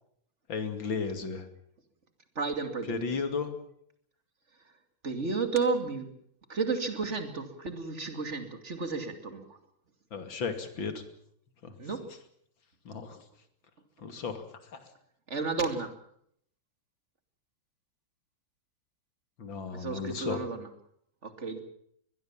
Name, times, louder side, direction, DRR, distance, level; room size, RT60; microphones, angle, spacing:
voice 1, 0.5-1.5 2.9-3.6 10.1-11.0 11.6-11.7 12.8-13.2 14.0-14.9 19.4-20.4, left 5 dB, 65° left, 9 dB, 3.2 m, -34 dB
voice 2, 2.3-3.0 5.0-6.1 6.5-9.6 11.8-12.1 15.3-15.9 19.7-20.7 21.2-21.6, right 4 dB, 35° right, 8 dB, 2.9 m, -32 dB
22.0 x 21.5 x 7.3 m, 0.68 s
omnidirectional pair, 2.2 m